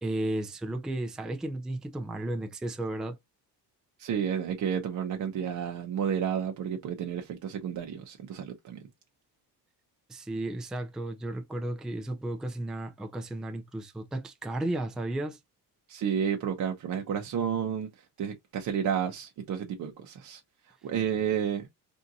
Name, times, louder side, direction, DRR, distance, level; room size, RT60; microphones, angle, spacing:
voice 1, 0.0-3.2 10.1-15.4, right 1 dB, ahead, 0.3 m, -34 dB
voice 2, 4.0-8.9 15.9-21.7, right 8 dB, 50° right, 0.6 m, -31 dB
3.5 x 2.7 x 2.5 m
cardioid pair, 145°, 41 cm